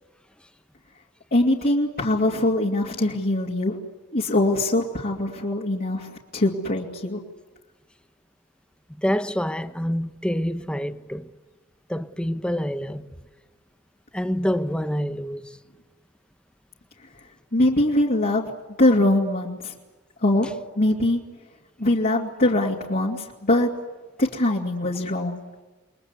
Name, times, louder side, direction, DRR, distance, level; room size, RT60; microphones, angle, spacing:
voice 1, 1.3-3.8 4.1-7.2 17.5-18.5 18.8-19.7 20.2-21.2 21.8-23.7 24.2-25.4, left 1 dB, 45° left, 2.6 m, -22 dB
voice 2, 9.0-11.3 11.9-13.1 14.1-15.6, equal, 5° left, 1.0 m, -27 dB
29.0 x 22.0 x 8.3 m
head